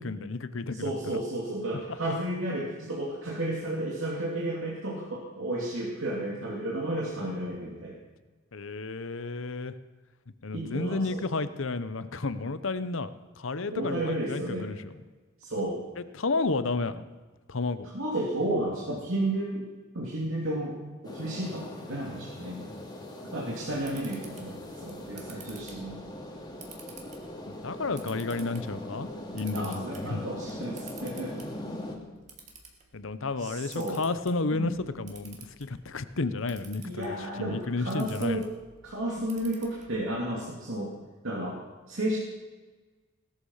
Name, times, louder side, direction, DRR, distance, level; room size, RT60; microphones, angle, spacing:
voice 1, 0.0-1.2 8.5-9.7 10.4-13.1 13.4-14.9 16.1-17.0 17.5-17.9 27.5-30.2 32.9-38.4, left 3 dB, 65° left, 13 dB, 0.9 m, -32 dB
voice 2, 0.7-8.0 10.5-11.2 13.7-14.7 15.4-15.8 17.9-19.7 19.9-20.8 21.0-22.7 23.3-26.0 29.5-31.3 33.4-34.0 34.5-34.8 36.8-38.5 38.8-40.9 41.2-41.6 41.9-42.2, right 1 dB, 65° right, -3 dB, 2.7 m, -32 dB
sound 1, 21.0-32.0, left 1 dB, 20° left, 2.4 m, -41 dB
Camera, 23.5-40.2, right 4 dB, 35° right, 2.6 m, -53 dB
18.0 x 13.0 x 5.7 m, 1.3 s
head